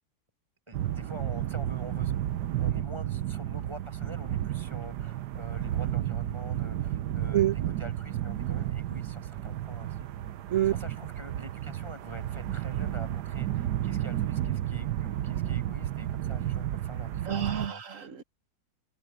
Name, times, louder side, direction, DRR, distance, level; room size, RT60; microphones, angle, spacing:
voice 1, 0.7-10.1 10.7-17.8, right 1 dB, 15° right, 7.4 m, -45 dB
sound 1, 0.7-17.7, right 12 dB, 80° right, 1.4 m, -32 dB
voice 2, 17.3-18.2, right 11 dB, 55° right, 1.5 m, -27 dB
omnidirectional pair, 1.8 m